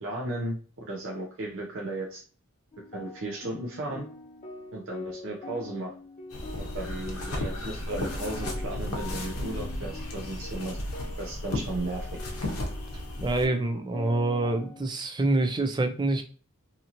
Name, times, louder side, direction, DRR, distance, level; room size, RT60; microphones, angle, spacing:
voice 1, 0.0-2.2 2.9-4.1 4.7-5.9 6.6-10.8 11.2-12.1, right 2 dB, 60° right, -1 dB, 0.6 m, -35 dB
sound 1, 2.7-14.8, left 3 dB, 35° left, 0.5 m, -44 dB
sound 2, 6.3-13.5, left 1 dB, 85° left, 0.7 m, -34 dB
voice 2, 13.2-16.2, right 2 dB, 20° right, 5 dB, 0.4 m, -26 dB
2.8 x 2.8 x 2.5 m, 0.39 s
head